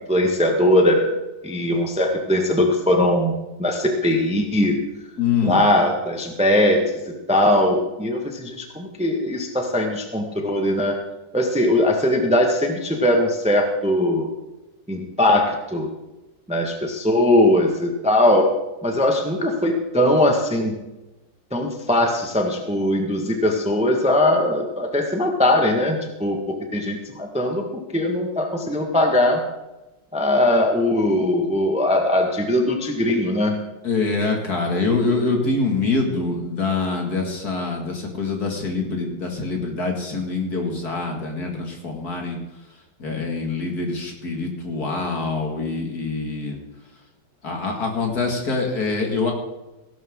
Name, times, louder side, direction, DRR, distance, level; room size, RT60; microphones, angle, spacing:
voice 1, 0.1-1.2 1.4-3.3 3.6-4.8 5.4-6.8 7.3-11.0 11.3-14.3 14.9-15.9 16.5-18.5 18.8-20.7 21.5-27.6 27.9-29.4 30.1-33.6, left 1 dB, 5° right, 2 dB, 1.2 m, -20 dB
voice 2, 5.2-5.6 33.8-42.4 43.0-46.6 47.4-49.3, left 4 dB, 50° left, 1 dB, 2.6 m, -25 dB
16.5 x 12.0 x 3.8 m, 1.0 s
omnidirectional pair, 2.1 m